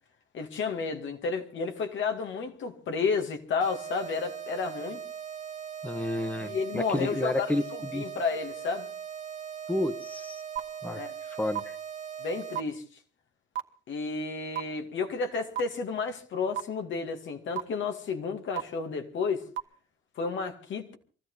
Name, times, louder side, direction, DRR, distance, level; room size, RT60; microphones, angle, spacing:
voice 1, 0.3-5.0 6.4-7.5 7.9-8.9 10.9-11.1 12.2-12.8 13.9-19.4 20.2-21.0, left 5 dB, 80° left, 2.4 m, -31 dB
sound 1, 3.6-12.6, right 8 dB, 40° right, 1.6 m, -40 dB
voice 2, 5.8-8.1 9.7-10.4 10.8-11.0 11.3-11.8, left 1 dB, 10° left, 1.3 m, -31 dB
sound 2, 10.6-10.7 11.5-11.6 12.5-12.6 13.6-13.7 14.6-14.7 15.6-15.7 16.6-16.7 17.6-17.7 18.6-18.7 19.6-19.7, right 12 dB, 80° right, 1.5 m, -29 dB
24.0 x 14.0 x 4.1 m
cardioid pair, 95°, 19 cm